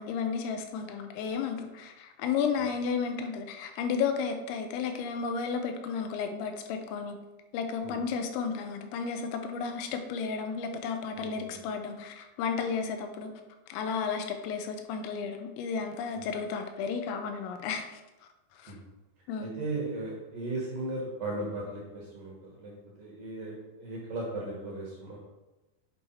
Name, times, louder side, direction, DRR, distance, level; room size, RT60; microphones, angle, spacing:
voice 1, 0.0-7.2 7.5-13.3 13.7-17.9 18.6-18.7 19.3-19.6, left 6 dB, 90° left, 5 dB, 3.0 m, -33 dB
voice 2, 11.1-11.6 16.1-16.3 18.7-18.8 19.4-22.7 23.0-25.2, right 2 dB, 65° right, -3 dB, 2.2 m, -37 dB
7.7 x 4.7 x 4.3 m, 1.1 s
omnidirectional pair, 5.3 m